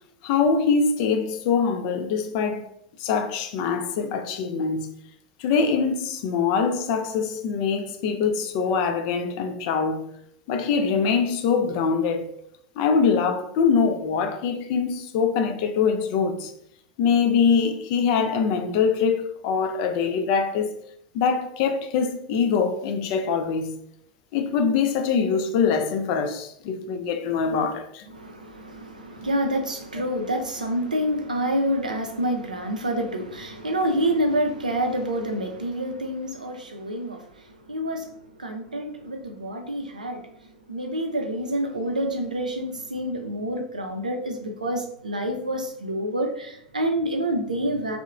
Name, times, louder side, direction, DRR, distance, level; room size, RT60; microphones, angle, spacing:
voice 1, 0.2-2.7 3.0-4.9 5.4-10.1 10.5-12.3 12.8-16.5 17.0-20.7 21.1-23.7 24.3-28.1, left 5 dB, 50° left, 0.4 m, -23 dB
voice 2, 28.1-38.1 38.4-48.0, right 1 dB, 85° right, 0.4 m, -28 dB
2.8 x 2.0 x 2.4 m
figure-of-eight pair, 85°, 4 cm